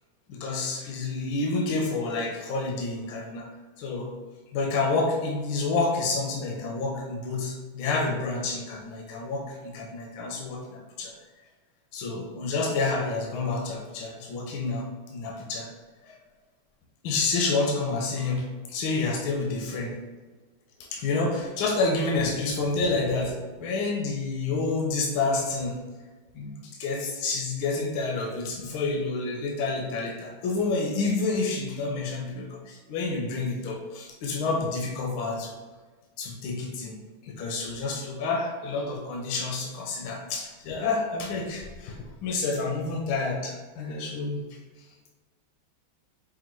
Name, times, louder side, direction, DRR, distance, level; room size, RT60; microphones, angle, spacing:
voice 1, 0.3-3.5 3.8-4.1 4.5-11.1 11.9-15.7 16.0-16.2 17.0-19.9 20.9-25.8 26.3-26.5 26.8-35.6 36.2-37.0 37.2-44.4, left 3 dB, 80° left, 0 dB, 1.4 m, -29 dB
5.5 x 2.3 x 2.9 m, 1.4 s
omnidirectional pair, 2.2 m